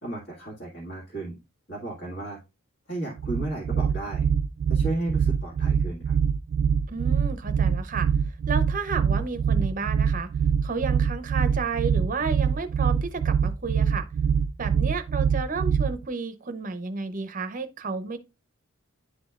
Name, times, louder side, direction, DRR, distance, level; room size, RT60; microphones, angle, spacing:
voice 1, 0.0-1.3 1.7-2.4 2.9-4.3 4.7-6.1, right 2 dB, 55° left, 1.9 m, -34 dB
sound 1, 3.2-16.1, right 7 dB, 70° right, 0.3 m, -24 dB
voice 2, 6.9-8.1 8.5-10.3 10.6-14.1 14.6-18.2, right 4 dB, 35° right, 0.6 m, -32 dB
10.0 x 4.3 x 2.3 m
head